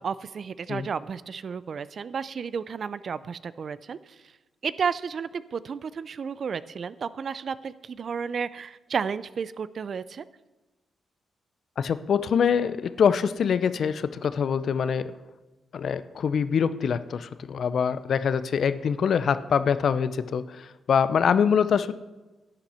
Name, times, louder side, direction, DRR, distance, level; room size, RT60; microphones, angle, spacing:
voice 1, 0.0-4.2 4.6-10.2, right 6 dB, 55° right, 17 dB, 0.4 m, -32 dB
voice 2, 11.8-15.1 15.7-21.9, left 7 dB, 65° left, 14 dB, 0.5 m, -24 dB
11.5 x 9.0 x 4.3 m, 1.1 s
cardioid pair, 75°, 0 cm